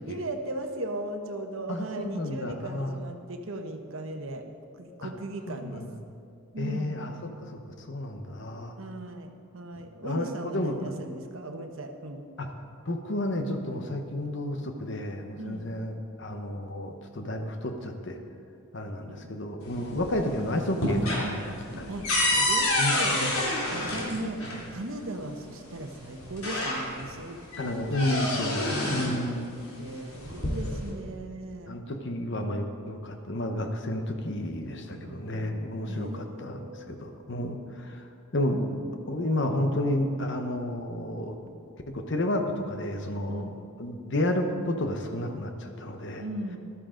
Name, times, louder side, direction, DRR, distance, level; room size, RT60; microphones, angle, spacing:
voice 1, 0.1-4.4 4.8-5.8 6.5-7.0 8.8-12.2 15.4-15.7 19.1-19.4 19.8-20.0 21.9-23.3 23.7-28.2 28.7-29.3 29.8-31.7 34.8-35.5 35.9-36.9 43.3-43.6 46.2-46.6, right 1 dB, 65° right, 5 dB, 1.0 m, -38 dB
voice 2, 1.7-3.0 5.0-5.1 5.5-5.9 6.6-8.7 10.0-10.2 10.5-10.9 12.4-12.5 12.9-18.2 18.7-21.9 22.8-23.3 27.6-29.5 31.7-38.1 38.3-41.4 41.9-43.5 43.8-46.2, left 1 dB, 55° left, 5 dB, 1.0 m, -31 dB
sound 1, 19.6-20.3 20.6-24.6 25.7-25.8 26.2-27.1 27.5-29.2 30.1-30.9, left 1 dB, 75° left, 3.0 m, -28 dB
14.0 x 12.5 x 3.9 m, 2.5 s
head